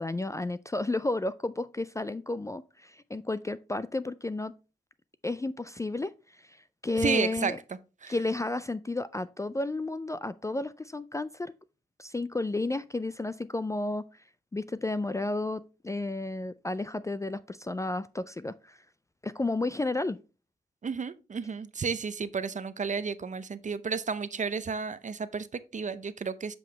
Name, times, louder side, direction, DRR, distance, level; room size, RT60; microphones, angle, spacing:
voice 1, 0.0-4.5 5.2-7.6 8.1-11.5 12.0-14.0 14.5-18.8 19.2-20.2, left 2 dB, 15° left, 0.3 m, -32 dB
voice 2, 7.0-7.5 8.0-8.1 20.8-26.5, right 5 dB, 45° right, 0.6 m, -32 dB
7.6 x 5.3 x 3.2 m
cardioid pair, 75°, 18 cm